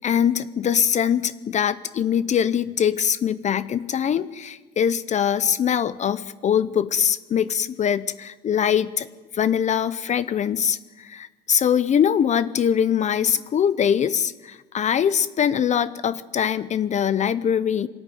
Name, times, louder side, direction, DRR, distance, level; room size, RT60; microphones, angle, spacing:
voice 1, 0.0-9.1 9.3-17.9, left 8 dB, 45° left, 15 dB, 0.7 m, -22 dB
23.5 x 13.5 x 9.4 m, 1.3 s
cardioid pair, 110°, 17 cm